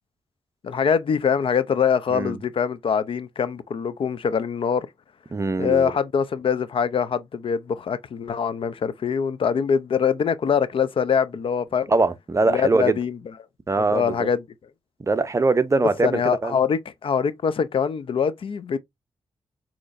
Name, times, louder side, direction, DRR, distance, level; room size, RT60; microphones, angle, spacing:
voice 1, 0.6-4.9 5.6-11.9 12.5-13.2 13.8-14.4 16.0-18.8, left 7 dB, 60° left, 0.5 m, -23 dB
voice 2, 5.3-5.9 11.9-13.0 13.7-14.3 15.0-16.5, right 3 dB, 30° right, 0.6 m, -22 dB
6.3 x 2.9 x 2.5 m
cardioid pair, 70°, 10 cm